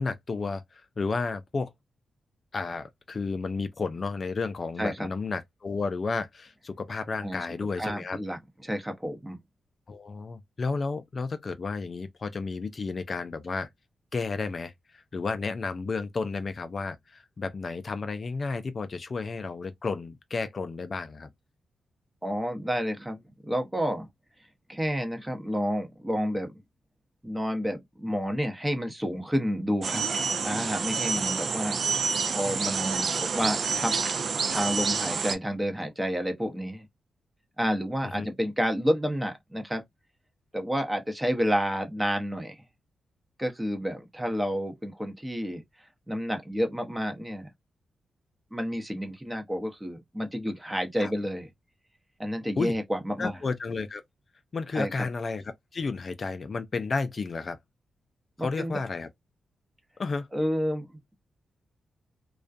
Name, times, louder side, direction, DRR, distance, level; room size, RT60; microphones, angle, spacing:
voice 1, 0.0-1.7 2.5-8.2 9.9-13.7 14.1-21.3 38.0-38.3 51.0-51.1 52.6-52.8 53.2-54.0 54.5-55.4 55.7-57.6 58.4-59.1 60.0-60.3, left 4 dB, 50° left, 0.3 m, -32 dB
voice 2, 4.8-5.1 7.2-7.4 7.8-9.4 22.2-24.1 24.7-26.5 27.2-30.0 30.4-31.8 32.3-33.9 34.5-36.9 37.6-39.8 40.5-42.6 43.4-45.6 46.1-47.5 48.5-51.5 52.2-53.4 54.7-54.9 58.4-58.8 60.3-60.9, equal, 15° right, 0.7 m, -30 dB
sound 1, 29.8-35.4, right 5 dB, 60° right, 0.4 m, -28 dB
2.3 x 2.2 x 2.5 m
cardioid pair, 60°, 0 cm